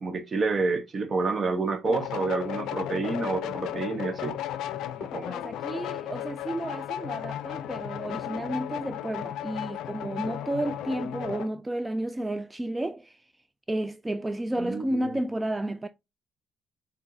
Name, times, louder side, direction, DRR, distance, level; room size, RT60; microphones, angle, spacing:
voice 1, 0.0-4.4 5.0-5.3 14.6-15.2, right 3 dB, 40° right, 0.8 m, -29 dB
sound 1, 1.9-11.5, left 11 dB, 85° left, 0.4 m, -35 dB
voice 2, 5.3-13.2 13.7-15.9, right 1 dB, 15° right, 0.3 m, -32 dB
5.8 x 2.7 x 2.6 m
cardioid pair, 90°, 0 cm